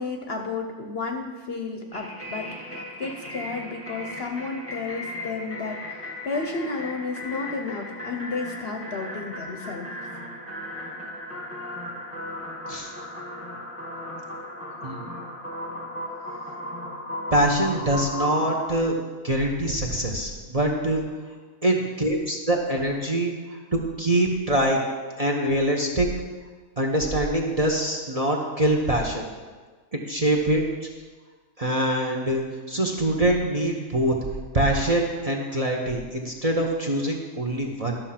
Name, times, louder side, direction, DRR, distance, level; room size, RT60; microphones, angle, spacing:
voice 1, 0.0-9.9, left 4 dB, 50° left, 4 dB, 0.9 m, -32 dB
sound 1, 1.9-18.8, left 1 dB, 10° left, 1.1 m, -36 dB
voice 2, 17.3-19.0 19.2-21.0 21.6-24.8 25.2-26.1 26.8-29.2 29.9-30.9 31.6-34.2 34.5-38.0, right 1 dB, 30° right, 1 dB, 0.9 m, -24 dB
12.0 x 6.3 x 5.8 m, 1.4 s
omnidirectional pair, 1.6 m